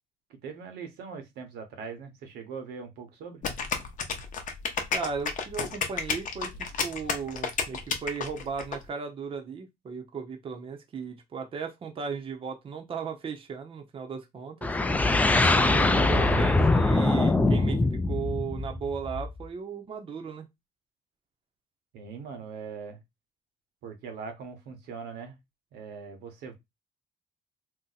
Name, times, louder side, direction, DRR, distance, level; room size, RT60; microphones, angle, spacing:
voice 1, 0.3-3.4 21.9-23.0 23.8-25.4 25.7-26.5, right 5 dB, 80° right, 0.9 m, -41 dB
sound 1, 3.4-8.8, left 5 dB, 50° left, 0.7 m, -31 dB
voice 2, 4.9-14.7 15.4-20.5, right 6 dB, 35° right, 0.6 m, -36 dB
sound 2, 14.6-19.4, left 2 dB, 10° left, 0.3 m, -23 dB
2.7 x 2.1 x 4.0 m
cardioid pair, 110°, 17 cm